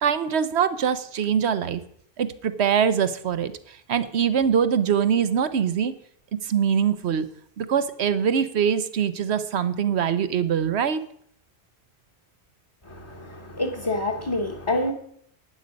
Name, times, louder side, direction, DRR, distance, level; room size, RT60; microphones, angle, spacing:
voice 1, 0.0-1.8 2.2-5.9 6.4-7.3 7.6-11.0, right 8 dB, 85° right, 12 dB, 1.1 m, -23 dB
voice 2, 12.9-14.9, left 2 dB, 30° left, 4 dB, 1.3 m, -27 dB
11.5 x 9.7 x 5.2 m, 0.67 s
omnidirectional pair, 1.1 m